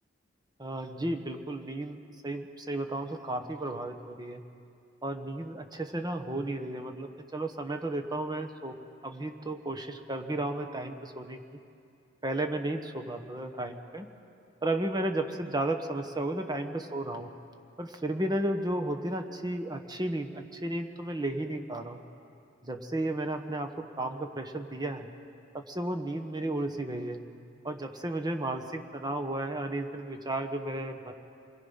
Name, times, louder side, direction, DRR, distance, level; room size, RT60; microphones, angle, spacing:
voice 1, 0.6-4.4 5.0-8.7 9.0-11.4 12.2-14.1 14.6-17.3 17.8-22.0 22.6-25.1 25.5-27.2 27.6-31.1, right 1 dB, 20° right, 6 dB, 1.4 m, -33 dB
26.5 x 22.0 x 5.7 m, 2.5 s
head